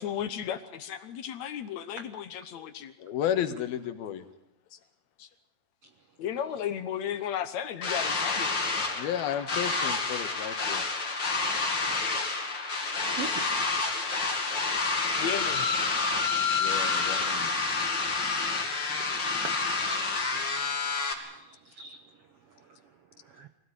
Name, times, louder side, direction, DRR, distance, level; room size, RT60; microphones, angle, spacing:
voice 1, 0.0-2.9 4.7-4.8 5.2-5.3 6.2-8.5 13.2-13.6 14.0-14.1 15.2-15.7 16.5-16.6, left 9 dB, 65° left, 11 dB, 2.0 m, -35 dB
voice 2, 3.0-4.3 8.9-10.8 16.6-17.5, left 10 dB, 85° left, 10 dB, 3.3 m, -32 dB
sound 1, 7.8-21.1, left 4 dB, 30° left, 3.4 m, -29 dB
voice 3, 19.9-20.7 21.3-22.0 23.3-23.5, right 5 dB, 70° right, 8 dB, 1.4 m, -42 dB
24.5 x 17.0 x 9.6 m, 0.84 s
omnidirectional pair, 4.2 m